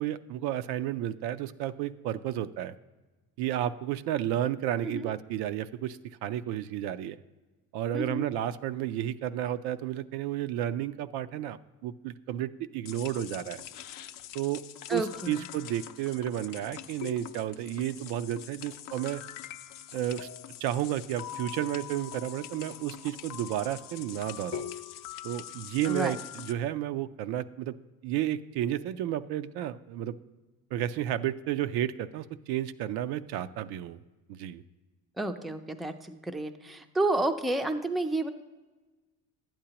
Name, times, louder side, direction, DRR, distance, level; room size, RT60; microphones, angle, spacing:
voice 1, 0.0-2.7 3.4-7.2 7.7-13.6 14.3-14.6 14.9-19.2 19.9-20.3 20.6-24.7 25.2-27.8 28.0-30.2 30.7-34.0 34.3-34.6, right 12 dB, 80° right, 12 dB, 0.5 m, -32 dB
voice 2, 7.9-8.3 14.9-15.4 25.8-26.2 35.2-38.3, right 2 dB, ahead, 7 dB, 0.4 m, -30 dB
sound 1, 12.9-26.5, left 12 dB, 55° left, 0.5 m, -43 dB
11.5 x 8.8 x 2.9 m, 1.2 s
cardioid pair, 100°, 39 cm